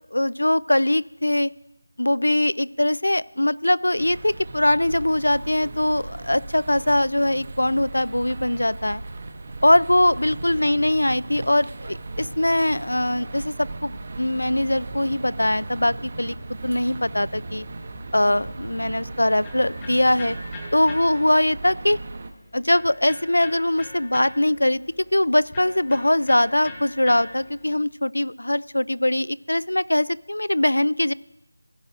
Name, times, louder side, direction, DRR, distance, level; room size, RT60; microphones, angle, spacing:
voice 1, 0.1-1.5 2.0-9.0 9.6-16.3 16.6-17.6 18.1-20.4 20.7-22.0 22.5-24.8 25.1-31.1, left 1 dB, 85° left, 20 dB, 0.3 m, -22 dB
sound 1, 4.0-22.3, right 2 dB, 30° right, 0.7 m, -37 dB
Electric guitar, 18.7-27.8, left 2 dB, 10° left, 0.9 m, -43 dB
17.0 x 8.7 x 2.5 m, 0.88 s
figure-of-eight pair, 170°, 0 cm